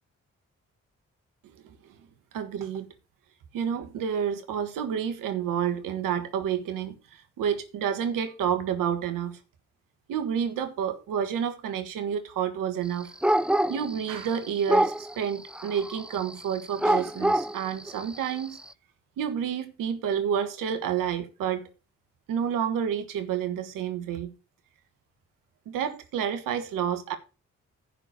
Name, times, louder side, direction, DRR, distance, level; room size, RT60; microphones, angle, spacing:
voice 1, 1.4-1.9 2.3-2.9 3.5-9.4 10.1-13.1 13.7-18.6 19.2-21.7 22.3-24.3 25.6-27.1, right 8 dB, 85° right, 1.5 m, -29 dB
sound 1, 13.2-14.4 14.7-15.1 15.5-18.6, right 1 dB, 5° right, 0.5 m, -25 dB
11.0 x 4.6 x 7.8 m
supercardioid pair, 45°, 32 cm